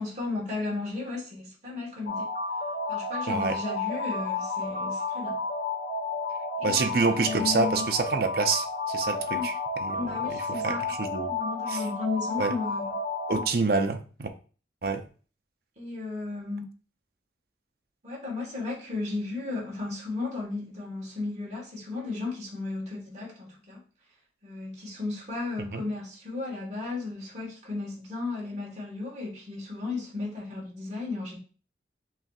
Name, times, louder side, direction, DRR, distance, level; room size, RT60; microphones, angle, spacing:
voice 1, 0.0-2.3 2.9-5.4 6.6-7.9 9.3-9.5 9.9-10.8 11.3-12.9 13.3-13.4 15.8-16.6 18.0-23.8 24.4-31.4, left 3 dB, 40° right, -3 dB, 1.4 m, -34 dB
sound 1, 2.1-13.5, left 3 dB, 55° left, 1.1 m, -32 dB
voice 2, 6.6-9.5 9.8-10.0 10.6-11.3 11.7-11.8 12.4-12.5 13.3-14.3 14.8-15.0 25.7-25.8, right 4 dB, 55° right, 6 dB, 0.6 m, -27 dB
6.1 x 2.7 x 2.4 m, 0.38 s
head